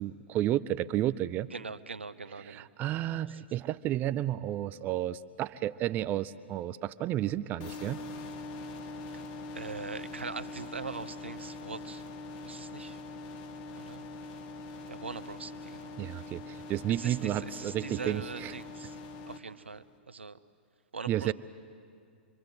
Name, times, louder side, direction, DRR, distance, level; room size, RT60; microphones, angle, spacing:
voice 1, 0.0-1.5 2.4-8.0 16.0-18.5 21.1-21.3, right 13 dB, 30° right, 15 dB, 0.6 m, -32 dB
voice 2, 1.5-2.7 3.3-3.4 9.5-12.0 12.4-13.0 13.7-14.1 14.9-16.0 16.9-19.0 19.3-20.4 20.9-21.3, right 4 dB, 90° right, 14 dB, 0.9 m, -42 dB
sound 1, 7.6-19.4, left 2 dB, 40° left, 1.7 m, -43 dB
27.0 x 22.5 x 8.0 m, 2.4 s
hypercardioid pair, 115°, 6 cm